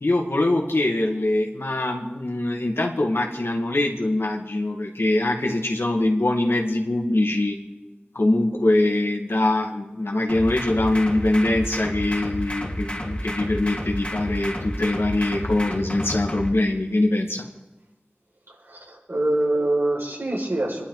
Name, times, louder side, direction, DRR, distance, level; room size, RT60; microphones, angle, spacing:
voice 1, 0.0-7.6 8.1-17.5, left 2 dB, 90° left, 1 dB, 2.0 m, -23 dB
sound 1, 10.3-16.5, equal, 30° left, 2.3 m, -31 dB
voice 2, 18.5-20.8, right 1 dB, 80° right, -4 dB, 5.8 m, -25 dB
27.0 x 11.5 x 4.1 m, 1.1 s
wide cardioid pair, 40°, 4 cm